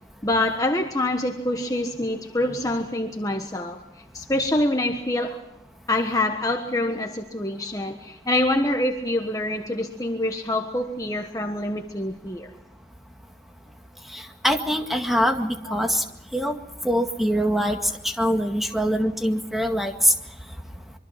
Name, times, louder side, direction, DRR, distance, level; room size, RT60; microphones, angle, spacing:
voice 1, 0.2-3.8 4.1-5.4 5.9-12.5 15.7-15.8, left 1 dB, 20° left, 4 dB, 1.3 m, -25 dB
voice 2, 14.1-16.0 16.3-16.5 16.8-17.8 18.2-20.1, equal, ahead, 4 dB, 1.9 m, -23 dB
25.0 x 24.0 x 5.8 m, 0.88 s
head